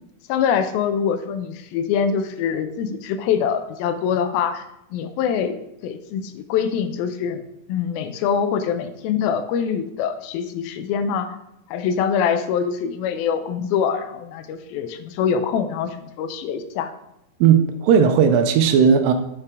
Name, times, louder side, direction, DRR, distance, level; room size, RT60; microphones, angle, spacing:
voice 1, 0.3-5.6 5.8-7.4 7.7-11.4 11.7-16.9, left 7 dB, 85° left, 9 dB, 2.5 m, -24 dB
voice 2, 17.4-19.1, right 7 dB, 80° right, 8 dB, 2.2 m, -16 dB
8.7 x 4.4 x 4.6 m, 0.83 s
omnidirectional pair, 4.2 m